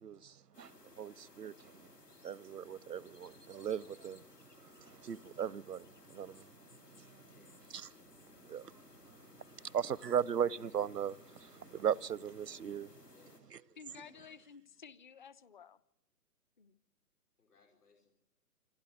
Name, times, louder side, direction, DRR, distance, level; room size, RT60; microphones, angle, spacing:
voice 1, 0.0-1.9 2.2-6.5 7.0-7.1 7.7-7.9 8.4-9.2 9.7-13.1, right 8 dB, 85° right, 0.7 m, -38 dB
sound 1, 0.5-13.4, left 3 dB, 90° left, 3.6 m, -60 dB
voice 2, 13.1-14.5 17.4-18.1, left 4 dB, 75° left, 4.9 m, -68 dB
voice 3, 13.8-15.8 16.6-16.8, left 6 dB, 30° left, 0.7 m, -54 dB
27.0 x 12.0 x 9.1 m
figure-of-eight pair, 140°, 47 cm